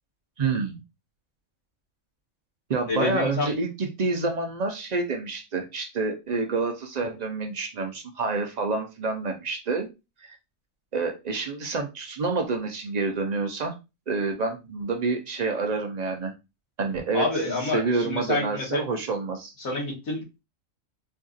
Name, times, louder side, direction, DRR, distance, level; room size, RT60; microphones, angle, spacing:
voice 1, 0.4-0.8 2.7-9.9 10.2-10.4 10.9-13.7 14.1-16.3 16.8-19.5, right 4 dB, 55° right, 4 dB, 0.4 m, -28 dB
voice 2, 2.9-3.5 17.1-18.8 19.6-20.4, left 3 dB, 85° left, -3 dB, 2.0 m, -28 dB
4.5 x 2.4 x 2.5 m, 0.25 s
omnidirectional pair, 1.4 m